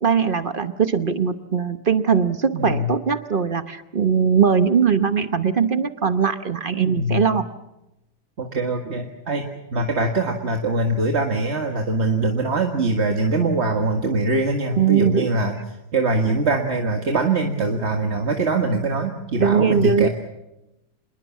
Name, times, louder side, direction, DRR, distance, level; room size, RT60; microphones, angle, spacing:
voice 1, 0.0-7.4 14.8-15.3 19.4-20.1, right 6 dB, 50° right, 10 dB, 0.6 m, -20 dB
voice 2, 2.5-2.9 6.8-7.2 8.4-15.5 15.9-20.1, right 2 dB, 35° right, 3 dB, 1.8 m, -23 dB
27.0 x 21.5 x 7.2 m, 0.92 s
omnidirectional pair, 2.3 m